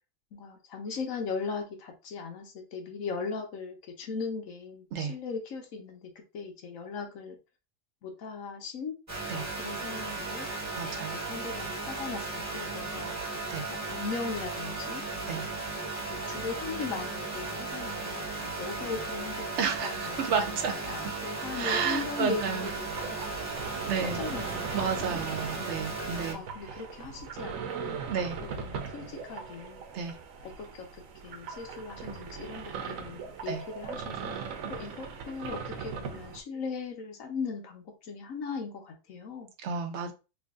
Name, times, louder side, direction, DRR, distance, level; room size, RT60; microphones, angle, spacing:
voice 1, 0.3-7.4 8.0-9.0 9.3-10.5 11.1-13.2 13.7-15.0 15.3-15.6 16.1-19.5 19.8-23.7 24.1-24.8 26.3-29.8 30.4-39.5, left 5 dB, 90° left, 1.3 m, -39 dB
sound 1, 9.1-26.3, right 3 dB, 15° right, 0.9 m, -36 dB
voice 2, 10.7-11.2 13.5-13.6 15.3-15.5 19.6-20.8 21.5-22.7 23.9-24.2 24.7-26.4 26.6-26.8 27.9-28.4 29.9-30.2 33.5-33.6 39.6-40.1, right 6 dB, 65° right, 0.9 m, -31 dB
sound 2, 22.6-36.4, right 6 dB, 85° right, 1.0 m, -39 dB
3.1 x 2.6 x 3.5 m
omnidirectional pair, 1.4 m